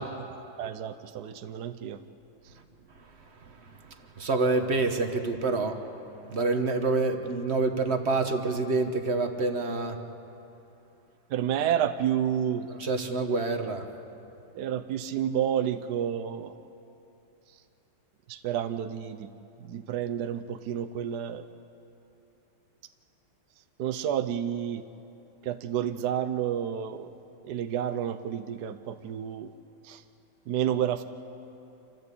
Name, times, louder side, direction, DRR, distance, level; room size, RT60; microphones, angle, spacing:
voice 1, 0.0-2.0 2.4-2.5 11.3-12.7 14.5-16.5 18.3-19.3 19.6-21.5 23.8-24.8 25.4-27.1 27.4-29.5 29.8-30.0 30.5-31.0, right 9 dB, 65° right, 10 dB, 1.0 m, -30 dB
voice 2, 4.2-5.8 6.3-10.0 12.8-13.8, right 3 dB, 40° right, 6 dB, 1.1 m, -27 dB
27.0 x 15.0 x 8.4 m, 2.8 s
omnidirectional pair, 2.4 m